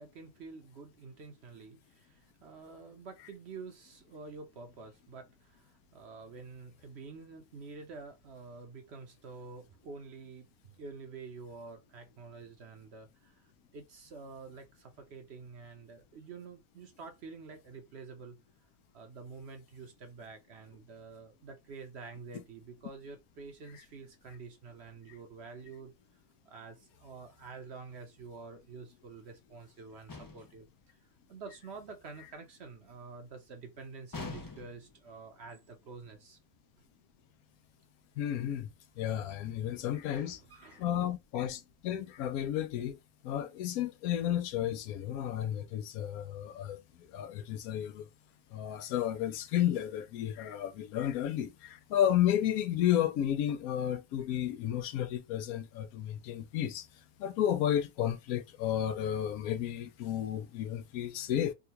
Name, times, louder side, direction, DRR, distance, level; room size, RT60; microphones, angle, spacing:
voice 1, 0.0-18.4 18.9-25.9 26.4-36.4 36.8-36.9 39.6-39.8 40.1-41.0, right 4 dB, 55° right, 0.9 m, -48 dB
sound 1, 30.1-30.6 34.1-34.9, left 4 dB, 35° left, 0.3 m, -43 dB
voice 2, 38.2-38.7 39.0-40.4 40.7-46.8 47.1-48.1 48.5-56.9 57.2-61.5, left 11 dB, 85° left, 1.1 m, -32 dB
3.6 x 2.3 x 2.8 m
omnidirectional pair, 1.5 m